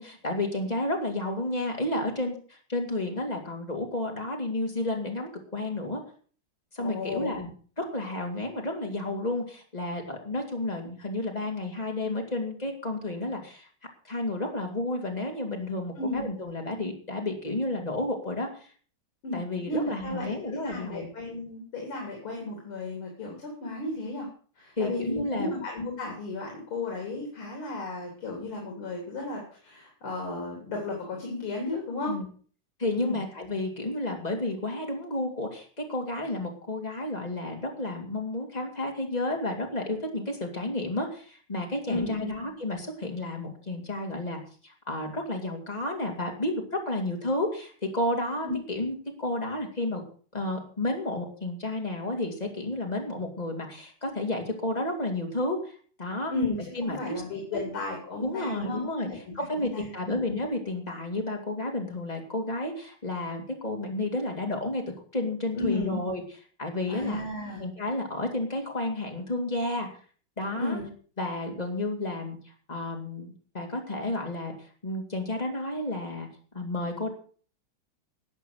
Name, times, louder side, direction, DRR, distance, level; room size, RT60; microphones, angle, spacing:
voice 1, 0.0-6.0 6.7-7.5 7.8-13.7 14.0-18.7 19.3-21.1 24.8-25.5 32.1-32.2 32.8-50.0 50.3-56.3 56.7-57.2 57.5-57.6 58.2-59.1 59.3-64.8 65.1-66.2 66.6-67.2 67.6-69.9 70.4-70.8 71.2-74.5 74.8-76.3 76.5-77.1, left 2 dB, 20° left, 1 dB, 2.9 m, -31 dB
voice 2, 6.8-7.4 16.0-16.3 19.2-24.3 24.6-32.2 33.0-33.2 41.9-42.3 48.4-48.5 56.3-60.2 65.6-66.0 66.9-67.6 70.6-70.9, left 2 dB, 80° left, 0 dB, 4.1 m, -34 dB
14.0 x 8.2 x 6.4 m, 0.43 s
omnidirectional pair, 2.3 m